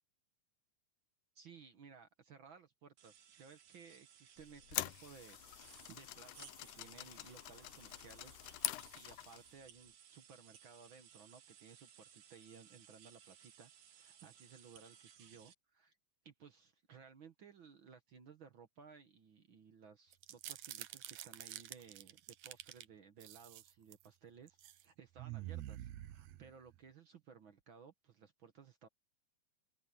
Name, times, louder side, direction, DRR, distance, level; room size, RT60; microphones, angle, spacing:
voice 1, 1.3-8.5 8.9-15.9 16.2-28.9, right 6 dB, 55° right, 1.4 m, -59 dB
sound 1, 3.0-15.5, right 9 dB, 90° right, 3.7 m, -62 dB
sound 2, 4.4-9.5, left 15 dB, 75° left, 2.2 m, -45 dB
sound 3, 20.1-22.8 23.2-24.1 24.5-24.8 25.2-26.8, right 14 dB, 70° right, 2.0 m, -48 dB
open air
omnidirectional pair, 3.7 m